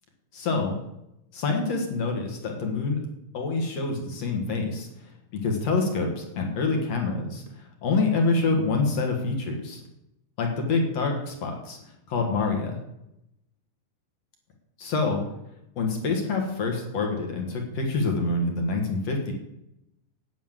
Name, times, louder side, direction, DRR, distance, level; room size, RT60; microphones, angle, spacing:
voice 1, 0.3-0.7 1.3-3.0 3.3-7.4 7.8-9.8 10.4-11.8 12.1-12.8 14.8-15.2 15.8-19.3, left 3 dB, 55° left, 2 dB, 1.9 m, -26 dB
9.4 x 8.6 x 7.4 m, 0.84 s
omnidirectional pair, 5.2 m